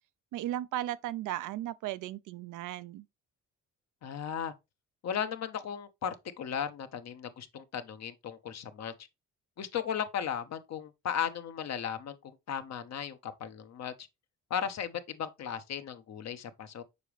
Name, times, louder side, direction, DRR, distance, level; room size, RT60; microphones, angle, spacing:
voice 1, 0.3-3.0, right 13 dB, 85° right, 0.6 m, -36 dB
voice 2, 4.0-4.5 5.0-8.9 9.6-13.9 14.5-16.8, left 8 dB, 60° left, 1.1 m, -36 dB
6.8 x 4.9 x 3.2 m
cardioid pair, 90°, 30 cm